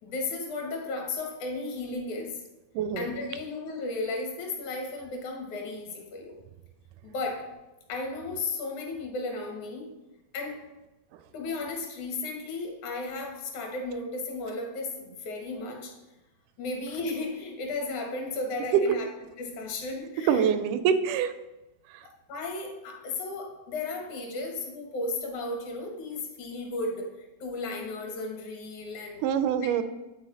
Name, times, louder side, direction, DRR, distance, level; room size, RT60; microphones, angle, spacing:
voice 1, 0.0-2.4 3.0-6.3 7.0-7.5 7.9-9.9 10.3-10.6 11.3-15.9 16.6-19.1 19.4-20.5 22.3-27.1 27.4-29.2, left 2 dB, 75° left, 1 dB, 2.7 m, -34 dB
voice 2, 2.7-3.1 18.7-18.8 20.3-21.3 21.9-22.1 29.2-29.8, right 8 dB, 85° right, 11 dB, 2.1 m, -25 dB
9.0 x 4.0 x 4.0 m, 1.0 s
omnidirectional pair, 3.5 m